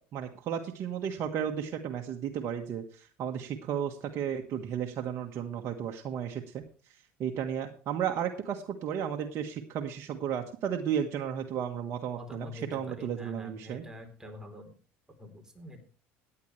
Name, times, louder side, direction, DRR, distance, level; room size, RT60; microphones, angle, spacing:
voice 1, 0.1-6.6 7.2-13.8, right 8 dB, 55° right, 3 dB, 1.4 m, -34 dB
voice 2, 12.1-14.7 15.2-15.8, left 2 dB, 10° right, 4 dB, 3.6 m, -46 dB
16.0 x 9.9 x 3.2 m, 0.39 s
supercardioid pair, 95°, 6 cm